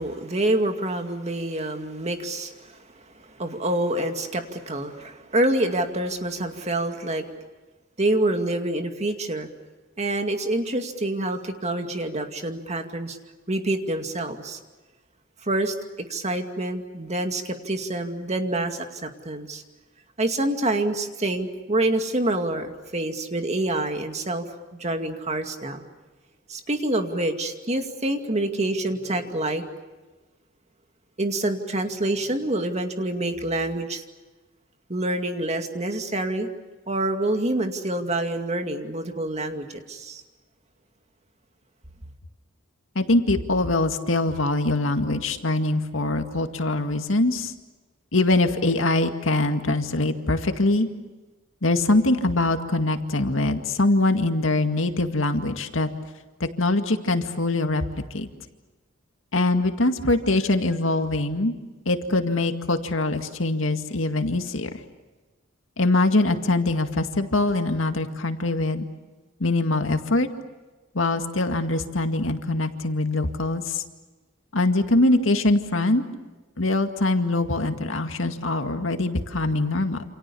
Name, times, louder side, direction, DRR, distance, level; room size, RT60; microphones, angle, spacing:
voice 1, 0.0-2.8 3.1-7.3 8.0-9.5 10.0-13.2 13.5-14.6 15.4-15.7 16.1-19.6 20.2-24.5 24.8-25.8 26.5-29.6 31.2-34.0 34.9-36.5 36.9-40.2, right 1 dB, 35° right, 6 dB, 2.3 m, -27 dB
voice 2, 43.0-47.5 48.1-50.9 51.6-55.9 56.4-57.8 58.1-58.3 59.3-61.5 61.9-64.7 65.8-68.9 69.4-70.3 70.9-73.8 74.5-76.0 76.6-80.0, left 2 dB, 80° left, 6 dB, 2.1 m, -23 dB
28.5 x 27.5 x 7.1 m, 1.2 s
head